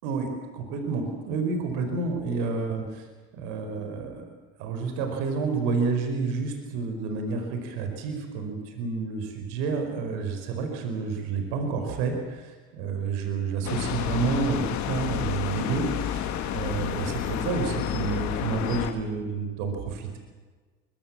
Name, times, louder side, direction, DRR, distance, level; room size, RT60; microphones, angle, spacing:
voice 1, 0.0-3.1 3.3-4.3 4.6-20.2, right 4 dB, 75° right, 5 dB, 4.9 m, -29 dB
sound 1, 13.6-18.9, left 10 dB, 55° left, 2.6 m, -30 dB
23.5 x 23.0 x 7.4 m, 1.4 s
hypercardioid pair, 80°, 33 cm